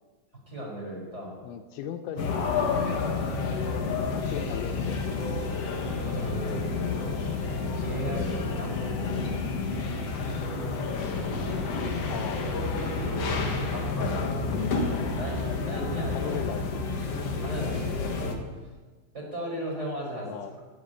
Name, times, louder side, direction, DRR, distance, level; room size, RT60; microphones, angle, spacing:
voice 1, 0.3-1.3 2.2-2.4 5.7-6.8 7.7-8.8 13.0-13.9 15.1-16.3 17.4-18.3 19.1-20.3, right 1 dB, 15° right, -2 dB, 4.8 m, -36 dB
voice 2, 1.4-5.2 12.1-12.4 16.1-17.1 20.3-20.5, left 9 dB, 85° left, 7 dB, 3.1 m, -38 dB
sound 1, 2.2-18.3, left 4 dB, 60° left, 1.6 m, -29 dB
12.5 x 11.0 x 9.3 m, 1.3 s
omnidirectional pair, 5.3 m